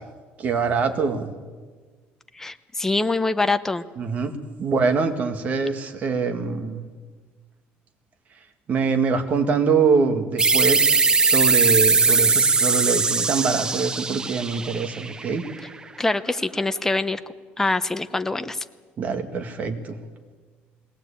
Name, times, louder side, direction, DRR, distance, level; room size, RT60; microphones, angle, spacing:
voice 1, 0.4-1.3 4.0-6.8 8.7-15.5 19.0-20.0, right 5 dB, 40° right, 6 dB, 2.0 m, -24 dB
voice 2, 2.4-3.8 16.0-17.2 17.6-18.6, left 2 dB, 10° left, 11 dB, 0.8 m, -24 dB
sound 1, 10.4-15.7, right 4 dB, 20° right, 0.6 m, -20 dB
20.5 x 18.0 x 8.6 m, 1.5 s
cardioid pair, 140°, 4 cm